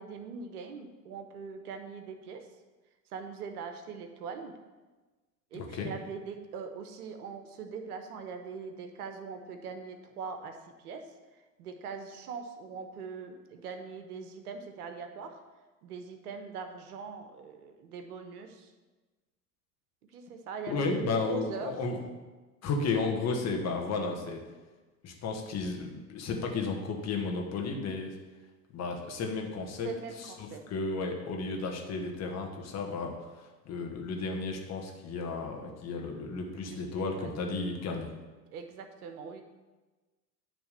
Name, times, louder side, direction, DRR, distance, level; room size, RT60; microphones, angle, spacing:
voice 1, 0.0-2.5 3.1-4.5 5.5-15.4 15.8-18.7 20.1-21.9 29.8-30.6 36.3-37.4 38.5-39.4, right 5 dB, 65° right, 6 dB, 1.1 m, -42 dB
voice 2, 5.5-5.9 20.7-22.0 22.6-24.4 25.0-28.2 28.7-29.9 30.4-33.1 33.6-38.1, left 3 dB, 30° left, 2 dB, 1.4 m, -33 dB
9.7 x 3.5 x 6.8 m, 1.2 s
figure-of-eight pair, 85°, 49 cm